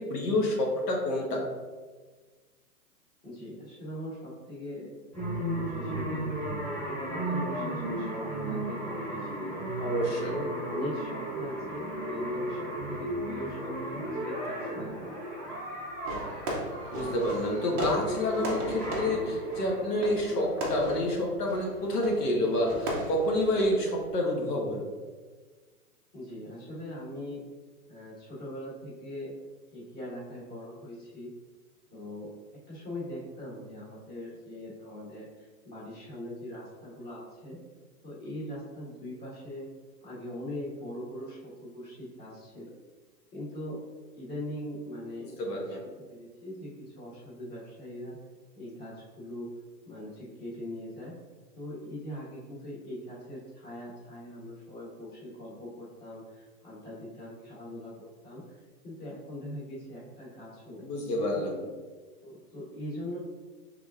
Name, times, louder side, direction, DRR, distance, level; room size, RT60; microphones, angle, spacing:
voice 1, 0.0-1.4 9.8-10.4 16.9-24.9 45.4-45.8 60.8-61.6, left 1 dB, 80° left, -1 dB, 1.1 m, -28 dB
voice 2, 3.2-4.9 5.3-6.4 6.9-9.5 10.1-15.2 26.1-27.4 27.9-29.3 29.7-31.3 31.9-32.3 32.7-37.6 38.0-39.7 40.0-42.7 43.3-43.8 44.1-45.8 46.1-48.2 48.5-49.5 49.8-51.1 51.5-60.9 61.3-61.5 62.2-63.2, left 1 dB, 20° left, -6 dB, 1.4 m, -41 dB
sound 1, 5.1-20.7, right 1 dB, ahead, 1.5 m, -35 dB
Fireworks, 16.0-24.1, right 1 dB, 15° right, 0.4 m, -37 dB
4.9 x 3.5 x 2.4 m, 1.4 s
hypercardioid pair, 135°, 47 cm